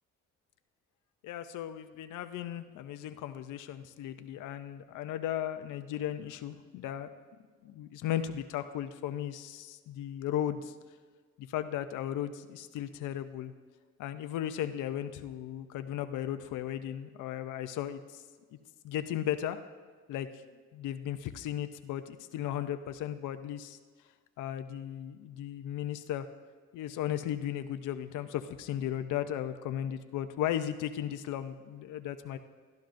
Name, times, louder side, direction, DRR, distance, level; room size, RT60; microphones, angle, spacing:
voice 1, 1.2-7.1 7.6-10.7 11.4-13.5 14.0-18.2 18.8-19.6 20.1-20.3 20.7-23.8 24.4-26.3 26.7-32.4, left 11 dB, 85° left, 10 dB, 0.6 m, -36 dB
17.0 x 12.0 x 2.6 m, 1.4 s
cardioid pair, 90°, 30 cm